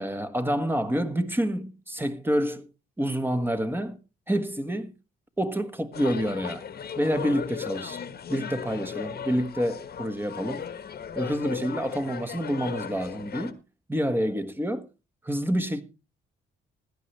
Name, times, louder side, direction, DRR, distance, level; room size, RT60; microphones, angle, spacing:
voice 1, 0.0-2.7 3.0-4.0 4.3-4.9 5.4-6.6 6.9-8.0 8.3-10.7 11.1-13.6 13.9-14.8 15.2-15.8, equal, 10° right, 1.5 m, -28 dB
sound 1, 5.9-13.5, left 7 dB, 50° left, 1.4 m, -37 dB
16.5 x 11.0 x 3.3 m
cardioid pair, 90°, 20 cm